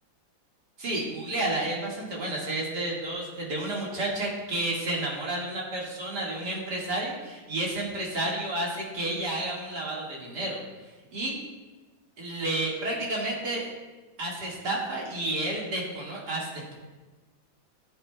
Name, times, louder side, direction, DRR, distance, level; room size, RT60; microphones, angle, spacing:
voice 1, 0.8-10.6 11.1-11.4 12.2-13.7 14.2-16.7, right 1 dB, 60° right, -3 dB, 2.5 m, -31 dB
14.5 x 8.4 x 2.3 m, 1.2 s
omnidirectional pair, 2.1 m